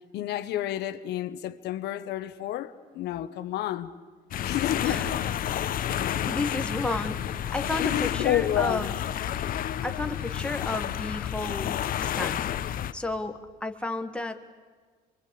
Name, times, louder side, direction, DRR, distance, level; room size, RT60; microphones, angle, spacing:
voice 1, 0.1-3.9 4.4-5.3 5.5-6.2 7.8-8.9, left 12 dB, 80° left, 1.1 m, -30 dB
sound 1, 4.3-12.9, left 10 dB, 55° left, 1.1 m, -30 dB
voice 2, 5.7-8.9 9.8-12.5 12.9-14.4, left 2 dB, 5° left, 1.8 m, -33 dB
24.5 x 23.5 x 8.5 m
cardioid pair, 110°, 17 cm